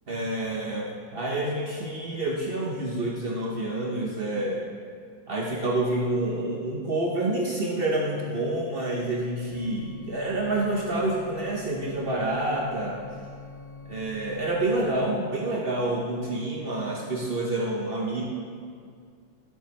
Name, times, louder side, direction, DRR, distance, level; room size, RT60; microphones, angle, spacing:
voice 1, 0.1-4.6 5.3-13.0 13.9-18.2, right 2 dB, 70° right, -2 dB, 0.5 m, -28 dB
sound 1, 9.5-15.0, left 4 dB, 5° left, 2.2 m, -44 dB
11.5 x 7.3 x 3.1 m, 2.1 s
omnidirectional pair, 2.1 m